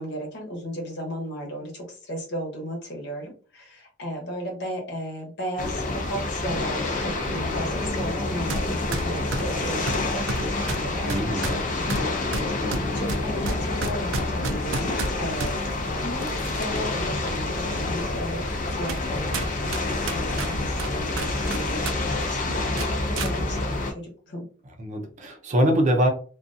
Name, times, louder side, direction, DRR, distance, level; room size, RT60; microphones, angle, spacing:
voice 1, 0.0-15.5 15.9-18.5 18.7-19.6 20.1-24.5, equal, 60° left, 1 dB, 1.0 m, -35 dB
sound 1, 5.6-23.9, left 2 dB, 45° left, 0.5 m, -28 dB
sound 2, 8.5-8.6 8.9-15.5 16.2-16.9 17.4-17.5 18.2-18.3 18.9-19.1 19.3-22.0 22.2-22.4 22.8-23.3, right 3 dB, 90° right, 0.4 m, -31 dB
voice 2, 11.1-11.5 24.8-26.1, equal, 40° right, 3 dB, 0.5 m, -23 dB
2.5 x 2.3 x 2.5 m, 0.40 s
head